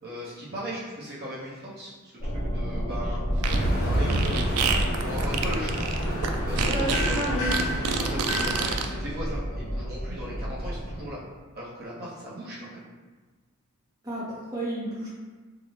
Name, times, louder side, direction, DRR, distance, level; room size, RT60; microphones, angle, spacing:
voice 1, 0.0-3.2 3.6-4.7 5.0-5.8 6.5-7.4 7.9-11.2 11.5-12.9, equal, 45° right, -8 dB, 0.9 m, -37 dB
sound 1, 2.2-11.1, equal, 45° left, 1.3 m, -31 dB
Fart, 3.3-8.9, right 4 dB, 80° right, 0.3 m, -28 dB
sound 2, 3.4-8.7, equal, 85° left, 0.7 m, -31 dB
voice 2, 6.6-7.5 14.0-15.1, equal, 15° right, -10 dB, 0.8 m, -31 dB
3.6 x 2.2 x 3.2 m, 1.3 s
head